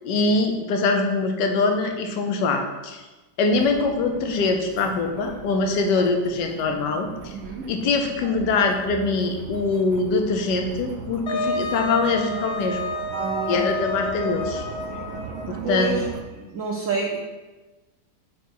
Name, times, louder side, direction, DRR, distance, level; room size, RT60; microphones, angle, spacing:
voice 1, 0.0-3.0 3.4-7.3 7.7-12.8 13.5-14.6 15.5-15.9, left 3 dB, 80° left, 4 dB, 1.4 m, -23 dB
sound 1, 3.5-16.2, right 6 dB, 80° right, 1.2 m, -39 dB
voice 2, 7.3-7.7 13.1-13.7 15.6-16.0 16.3-17.2, right 3 dB, 60° right, -2 dB, 0.9 m, -28 dB
Wind instrument woodwind instrument, 11.3-15.6, left 2 dB, 60° left, 0.8 m, -29 dB
5.1 x 4.6 x 4.5 m, 1.2 s
omnidirectional pair, 1.9 m